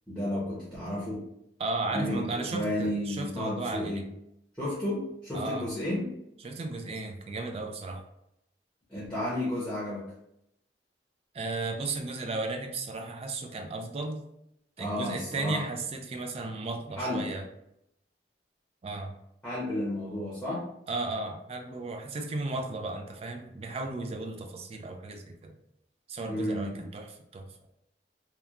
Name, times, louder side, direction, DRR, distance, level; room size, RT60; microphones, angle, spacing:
voice 1, 0.1-1.2 1.9-4.0 4.6-6.1 8.9-10.0 14.8-15.6 17.0-17.2 19.4-20.6 26.3-26.8, left 1 dB, 5° left, -9 dB, 0.8 m, -32 dB
voice 2, 1.6-4.0 5.3-5.7 6.4-8.0 11.3-14.2 14.8-17.5 18.8-19.1 20.9-25.5 26.1-27.5, right 2 dB, 35° right, 5 dB, 0.3 m, -35 dB
2.9 x 2.2 x 2.4 m, 0.79 s
head